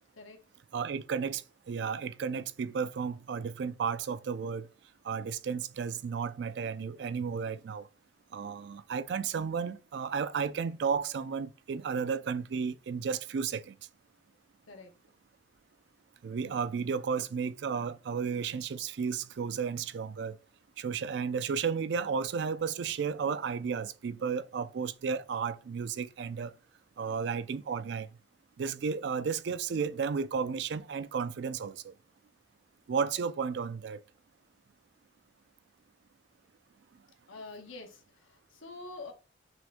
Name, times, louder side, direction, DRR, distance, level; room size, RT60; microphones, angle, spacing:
voice 1, 0.7-4.7 5.0-7.9 8.3-13.8 16.2-20.4 20.8-26.5 27.0-28.1 28.6-31.9 32.9-34.0, right 6 dB, 60° right, 0.3 m, -33 dB
voice 2, 37.3-39.1, left 3 dB, 90° left, 0.9 m, -46 dB
6.2 x 3.5 x 2.5 m
head